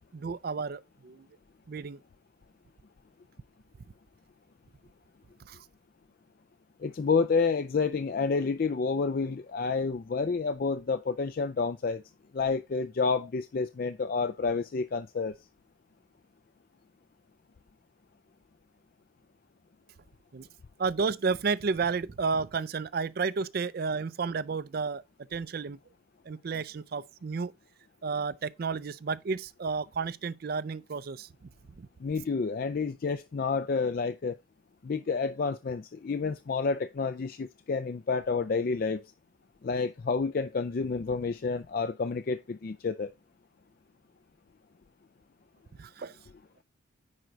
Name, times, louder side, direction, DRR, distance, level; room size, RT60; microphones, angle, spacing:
voice 1, 0.1-1.3 1.7-2.0 5.4-5.6 20.3-20.5 20.8-25.0 25.3-25.8 26.3-27.5 28.0-31.5 31.8-31.9 45.8-46.2, right 5 dB, 50° right, 0.4 m, -32 dB
voice 2, 6.8-12.0 12.3-15.3 32.0-34.4 34.8-39.0 39.6-43.1, left 4 dB, 45° left, 0.4 m, -29 dB
9.7 x 4.5 x 3.9 m
head